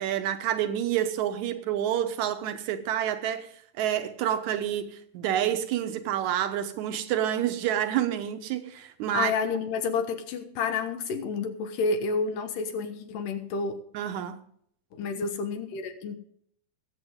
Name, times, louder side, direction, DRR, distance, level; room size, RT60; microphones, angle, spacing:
voice 1, 0.0-3.5 3.8-9.3 13.9-14.4, right 10 dB, 70° right, 2.2 m, -28 dB
voice 2, 9.1-13.8 14.9-16.2, left 4 dB, 85° left, 2.8 m, -30 dB
20.5 x 8.2 x 3.7 m
omnidirectional pair, 3.8 m